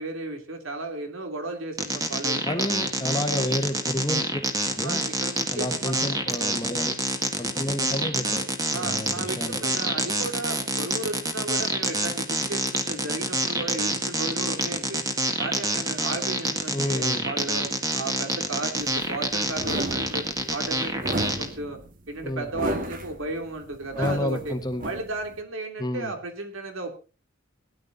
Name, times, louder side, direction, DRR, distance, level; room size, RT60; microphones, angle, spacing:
voice 1, 0.0-2.7 4.8-6.1 8.7-15.0 15.4-20.3 20.5-21.8 22.1-24.5 24.8-26.9, right 2 dB, 70° right, 5 dB, 3.0 m, -34 dB
sound 1, 1.8-21.5, right 2 dB, 15° right, 1.8 m, -27 dB
voice 2, 2.4-4.4 4.8-5.0 5.5-6.9 7.4-8.4 8.7-9.6 16.7-17.3 22.2-22.5 24.0-24.9 25.8-26.1, left 1 dB, 20° left, 6 dB, 1.4 m, -30 dB
sound 2, 18.8-25.4, right 1 dB, 40° right, 1.8 m, -33 dB
17.5 x 11.0 x 4.0 m, 0.33 s
head